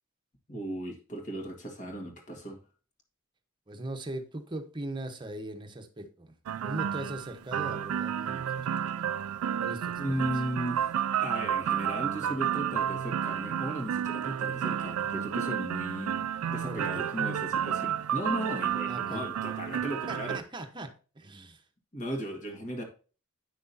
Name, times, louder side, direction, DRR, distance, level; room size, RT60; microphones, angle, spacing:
voice 1, 0.5-2.6 10.0-10.9 11.2-20.4 21.9-22.8, equal, 35° left, 1.9 m, -36 dB
voice 2, 3.7-6.3 6.6-8.7 9.6-10.3 12.7-12.8 16.6-17.1 18.9-19.2 20.1-21.6, right 1 dB, 20° right, 1.1 m, -39 dB
sound 1, 6.5-20.4, right 9 dB, 90° right, 0.4 m, -31 dB
9.7 x 6.1 x 2.8 m
head